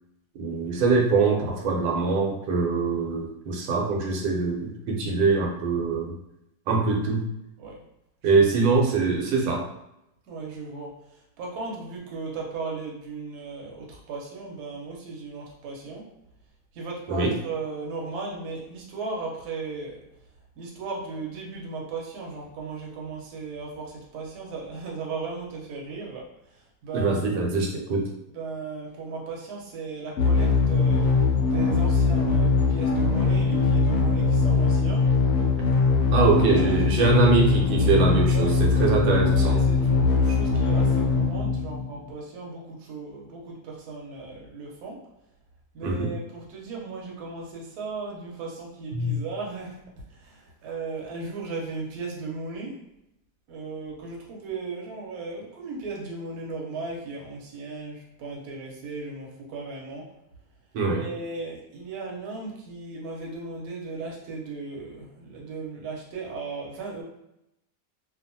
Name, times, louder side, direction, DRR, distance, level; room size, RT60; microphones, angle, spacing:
voice 1, 0.4-6.1 6.7-7.3 8.2-9.7 17.1-17.3 26.9-28.1 36.1-39.6 45.8-46.1 48.9-49.1 60.7-61.1, right 3 dB, 90° right, -1 dB, 1.3 m, -23 dB
voice 2, 8.3-8.6 10.3-11.0 11.4-16.1 16.7-20.0 20.6-27.4 28.3-31.1 31.5-35.1 36.1-36.8 38.3-38.6 39.3-45.0 45.7-52.8 53.5-60.1 60.9-67.0, right 3 dB, 65° right, -2 dB, 1.2 m, -36 dB
sound 1, 30.2-42.1, left 4 dB, 70° left, 0.8 m, -21 dB
2.8 x 2.4 x 2.6 m, 0.84 s
omnidirectional pair, 1.9 m